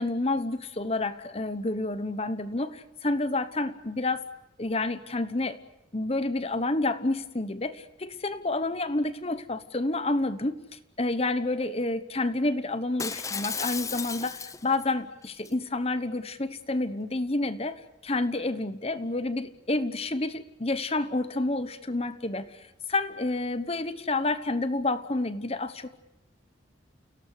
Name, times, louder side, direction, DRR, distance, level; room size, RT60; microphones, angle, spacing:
voice 1, 0.0-4.3 4.6-5.6 5.9-26.0, left 2 dB, 35° left, 12 dB, 1.2 m, -29 dB
Shatter, 13.0-14.8 15.2-15.5, left 5 dB, 15° left, 0.8 m, -34 dB
30.0 x 17.5 x 8.3 m, 0.91 s
head